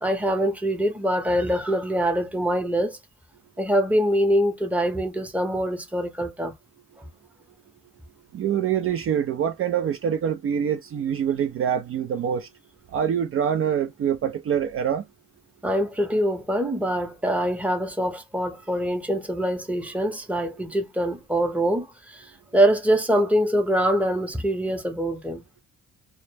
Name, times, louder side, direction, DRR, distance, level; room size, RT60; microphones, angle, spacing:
voice 1, 0.0-3.0 3.6-6.5 7.0-7.1 15.6-22.2 22.5-25.4, equal, 5° right, 0.7 m, -24 dB
voice 2, 8.3-12.5 12.9-15.0, right 8 dB, 45° right, 0.4 m, -25 dB
2.1 x 2.0 x 3.1 m
cardioid pair, 90°, 30 cm